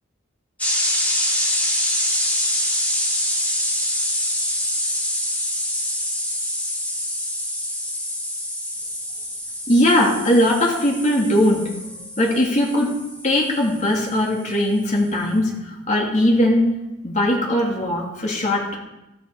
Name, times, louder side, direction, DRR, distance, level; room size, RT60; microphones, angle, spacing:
sound 1, 0.6-14.2, left 1 dB, 5° left, 2.5 m, -25 dB
voice 1, 9.7-11.7 12.2-12.9 13.2-16.7 17.0-18.8, left 1 dB, 35° left, -1 dB, 2.8 m, -19 dB
13.5 x 13.0 x 4.9 m, 0.95 s
head